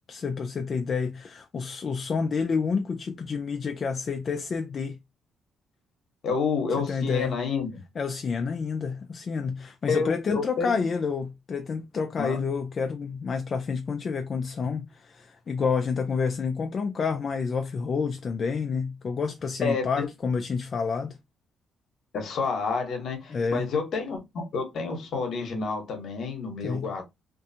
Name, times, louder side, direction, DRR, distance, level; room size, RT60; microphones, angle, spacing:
voice 1, 0.1-5.0 6.9-7.3 8.0-21.2 23.3-23.7 26.6-26.9, left 5 dB, 45° left, 0.3 m, -29 dB
voice 2, 6.2-7.8 9.9-10.8 12.2-12.4 19.6-20.1 22.1-27.0, left 5 dB, 65° left, 1.0 m, -29 dB
2.5 x 2.3 x 2.7 m
cardioid pair, 90°, 0 cm